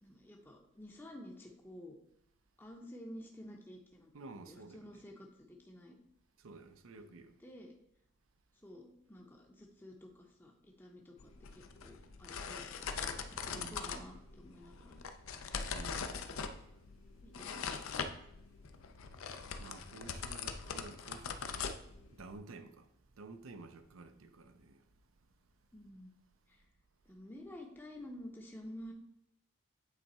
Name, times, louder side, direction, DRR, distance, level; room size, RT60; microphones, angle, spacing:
voice 1, 0.0-2.0 2.6-4.1 4.4-6.0 6.9-7.1 7.4-7.7 8.6-15.0 17.2-17.5 25.7-26.2 26.5-26.7 27.0-28.9, left 1 dB, 10° left, 0.6 m, -51 dB
voice 2, 4.1-4.8 6.4-7.3 13.5-13.8 15.7-16.1 19.6-21.7 22.1-24.8, right 3 dB, 85° right, 0.6 m, -52 dB
sound 1, 11.2-22.4, left 6 dB, 90° left, 0.6 m, -42 dB
8.3 x 3.5 x 4.2 m
head